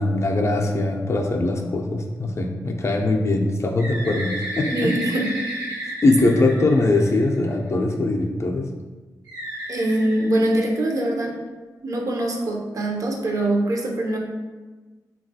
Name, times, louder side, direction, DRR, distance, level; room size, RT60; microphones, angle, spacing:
voice 1, 0.0-5.0 6.0-8.6, left 2 dB, 40° left, 2 dB, 0.4 m, -21 dB
Bird, 3.8-7.5 9.3-11.1, right 1 dB, 85° right, 1.1 m, -33 dB
voice 2, 4.7-5.3 9.7-11.4 11.8-14.2, right 1 dB, 55° right, 0 dB, 0.5 m, -23 dB
3.0 x 2.3 x 2.7 m, 1.3 s
cardioid pair, 50°, 7 cm